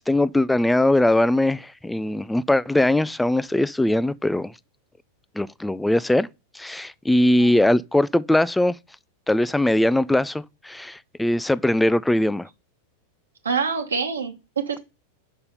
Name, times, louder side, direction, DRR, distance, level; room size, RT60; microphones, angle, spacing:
voice 1, 0.0-4.5 5.4-6.3 6.5-8.8 9.3-12.5, left 1 dB, 5° left, 0.3 m, -21 dB
voice 2, 13.4-14.8, right 5 dB, 70° right, 1.2 m, -26 dB
5.5 x 5.4 x 6.7 m
figure-of-eight pair, 90°, 0 cm